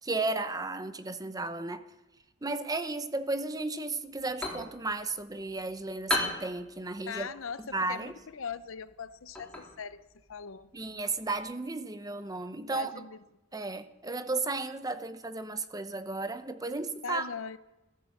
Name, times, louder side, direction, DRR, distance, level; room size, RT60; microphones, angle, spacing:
voice 1, 0.0-1.8 2.4-7.3 7.7-8.1 10.7-13.0 13.5-17.3, right 3 dB, 20° right, 11 dB, 0.8 m, -34 dB
sound 1, 4.1-11.5, left 2 dB, 5° left, 3.6 m, -39 dB
voice 2, 7.1-10.0 10.3-10.7 12.7-13.2 17.0-17.6, left 6 dB, 80° left, 14 dB, 0.7 m, -40 dB
14.0 x 14.0 x 7.3 m, 0.99 s
head